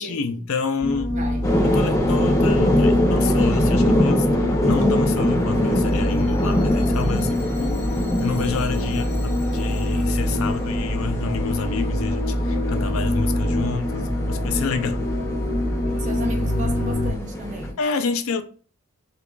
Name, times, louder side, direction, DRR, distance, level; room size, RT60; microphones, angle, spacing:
voice 1, 0.0-1.2 1.6-15.0 17.8-18.4, left 4 dB, 70° left, 0.4 m, -28 dB
sound 1, 0.8-17.1, left 1 dB, 40° left, 1.2 m, -24 dB
voice 2, 1.1-1.5 16.0-17.8, right 1 dB, 35° right, 0.6 m, -34 dB
sound 2, 1.4-17.7, left 1 dB, 15° left, 0.5 m, -24 dB
4.6 x 2.5 x 2.3 m
head